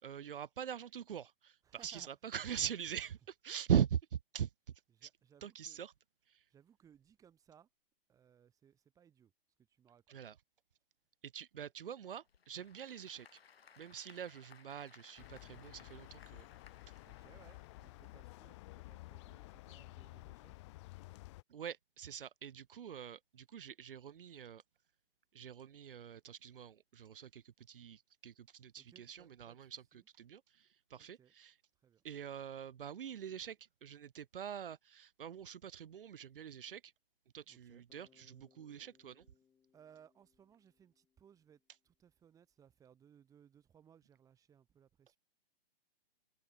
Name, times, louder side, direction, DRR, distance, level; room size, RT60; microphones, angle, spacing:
voice 1, 0.0-4.5 5.0-5.1 5.4-5.9 6.3-6.4 10.1-10.4 11.2-13.4 13.8-16.5 21.5-24.6 25.3-31.6 32.0-36.9 37.3-39.3, right 8 dB, 65° right, 2.2 m, -42 dB
voice 2, 1.6-2.1 2.6-2.7 4.9-5.8 6.5-7.7 8.1-9.3 9.7-10.2 17.0-20.6 28.8-30.0 31.0-31.3 31.8-32.0 37.5-37.8 39.7-45.2, right 8 dB, 10° right, 4.1 m, -64 dB
Applause / Crowd, 12.1-18.7, left 6 dB, 85° left, 3.0 m, -64 dB
sound 1, 15.2-21.4, left 20 dB, 30° left, 2.1 m, -53 dB
Bass guitar, 37.9-41.9, left 7 dB, 10° left, 4.4 m, -73 dB
hypercardioid pair, 160°, 30 cm